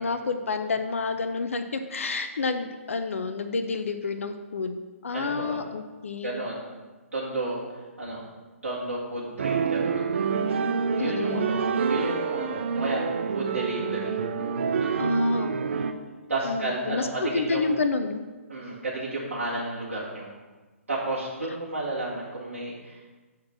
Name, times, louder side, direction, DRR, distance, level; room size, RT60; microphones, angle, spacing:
voice 1, 0.0-6.4 11.0-11.5 15.0-15.5 16.4-18.2, left 4 dB, 65° left, 8 dB, 0.6 m, -29 dB
voice 2, 5.1-5.6 6.2-6.6 7.1-8.2 8.6-10.1 10.9-13.0 13.3-14.2 14.8-15.0 15.8-15.9 16.3-17.7 18.5-20.4 20.9-23.1, right 2 dB, 75° right, -8 dB, 1.9 m, -32 dB
sound 1, 9.4-15.9, right 5 dB, 55° right, 0.5 m, -27 dB
7.2 x 4.5 x 5.9 m, 1.2 s
figure-of-eight pair, 130°, 8 cm